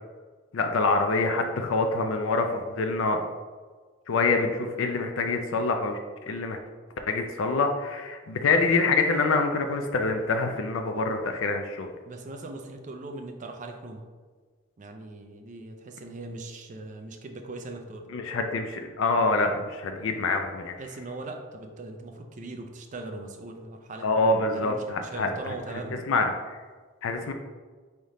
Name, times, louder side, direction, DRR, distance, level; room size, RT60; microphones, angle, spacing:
voice 1, 0.5-3.2 4.1-6.0 6.3-6.6 7.1-11.9 18.1-20.8 24.0-25.5 26.1-26.6 27.0-27.3, left 3 dB, 75° left, 5 dB, 0.4 m, -26 dB
voice 2, 12.1-14.1 14.8-18.1 19.9-20.2 20.8-26.0, right 2 dB, 40° right, 3 dB, 0.5 m, -40 dB
4.1 x 3.5 x 3.7 m, 1.4 s
head